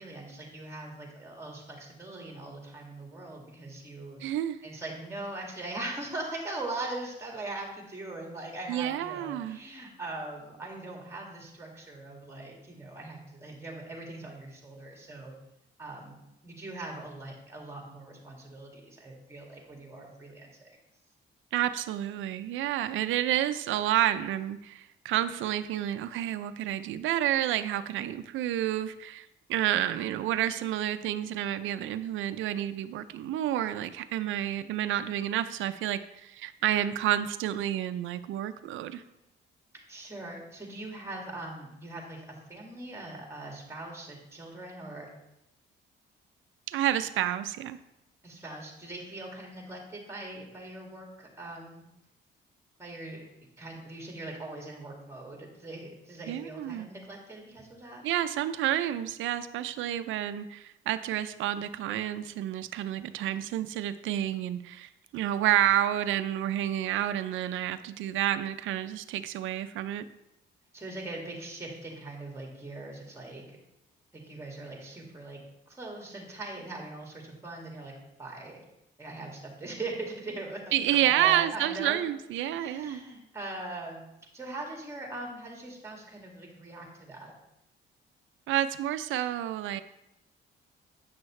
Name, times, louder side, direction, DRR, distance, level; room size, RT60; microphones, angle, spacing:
voice 1, 0.0-4.2 4.6-15.4 15.8-20.8 39.9-45.1 48.2-51.8 52.8-53.2 53.6-58.0 70.7-73.6 74.1-75.4 75.7-78.6 79.0-82.0 82.5-84.0 84.3-87.3, right 2 dB, 15° right, 0 dB, 2.1 m, -41 dB
voice 2, 4.2-4.6 8.7-9.6 21.5-39.0 46.7-47.8 56.3-56.9 58.0-70.0 80.7-83.0 88.5-89.8, right 12 dB, 80° right, 11 dB, 0.4 m, -29 dB
8.6 x 6.2 x 3.2 m, 0.86 s
cardioid pair, 90°, 20 cm